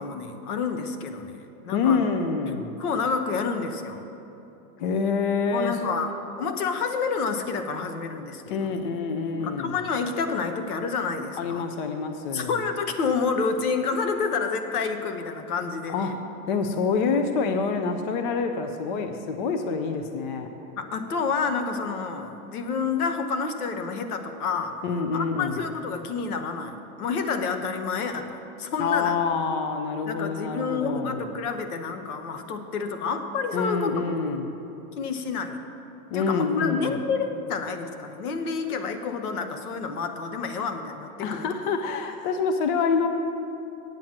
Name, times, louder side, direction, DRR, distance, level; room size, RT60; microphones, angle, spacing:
voice 1, 0.0-1.4 1.6-2.1 2.5-4.0 5.5-6.1 6.4-8.8 9.4-11.7 12.3-16.2 20.8-24.8 25.1-26.7 27.0-29.2 30.0-34.1 34.9-35.7 36.1-41.5, left 5 dB, 70° left, 7 dB, 1.2 m, -29 dB
voice 2, 1.7-2.7 4.8-5.8 8.5-9.7 11.4-12.6 15.9-16.1 16.5-20.5 24.8-25.6 28.8-31.2 33.5-34.5 36.1-37.0 41.2-43.1, left 5 dB, 35° left, 7 dB, 0.5 m, -26 dB
9.0 x 7.6 x 7.3 m, 2.8 s
supercardioid pair, 155°, 46 cm